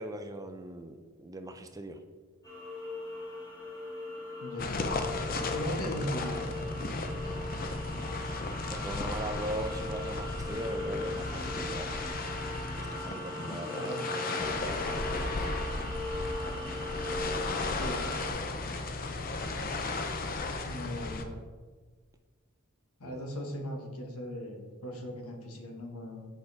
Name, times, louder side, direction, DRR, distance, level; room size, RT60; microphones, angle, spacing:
voice 1, 0.0-2.0 8.7-11.9 12.7-16.0 23.0-23.3, right 1 dB, 15° right, 7 dB, 0.4 m, -41 dB
sound 1, 2.4-18.3, left 1 dB, 15° left, 1.8 m, -39 dB
voice 2, 4.4-4.8 5.5-6.5 13.7-14.1 17.8-18.0 20.6-21.4 23.0-26.3, left 1 dB, 85° left, 3 dB, 1.2 m, -38 dB
sound 2, 4.6-21.2, left 3 dB, 40° left, 0.6 m, -35 dB
8.1 x 5.1 x 4.0 m, 1.4 s
head